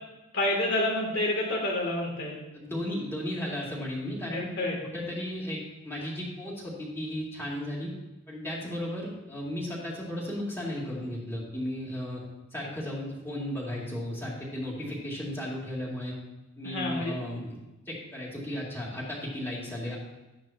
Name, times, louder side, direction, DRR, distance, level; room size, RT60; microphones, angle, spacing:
voice 1, 0.3-2.4 4.3-4.8 16.6-17.2, left 1 dB, 55° left, -2 dB, 3.1 m, -28 dB
voice 2, 2.5-4.5 4.9-7.9 8.3-12.2 12.5-16.2 16.6-17.6 17.9-20.0, left 1 dB, 10° left, -6 dB, 2.9 m, -35 dB
13.0 x 10.0 x 3.0 m, 1.0 s
head